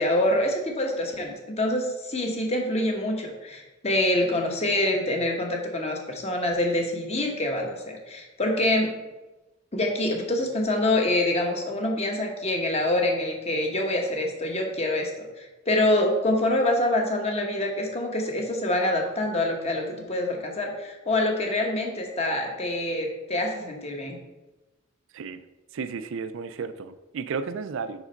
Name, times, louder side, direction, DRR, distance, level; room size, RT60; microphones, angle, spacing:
voice 1, 0.0-9.0 9.7-24.2, left 1 dB, 30° left, 2 dB, 1.1 m, -26 dB
voice 2, 25.7-28.0, right 5 dB, 65° right, 12 dB, 0.4 m, -33 dB
5.4 x 4.8 x 5.1 m, 1.1 s
head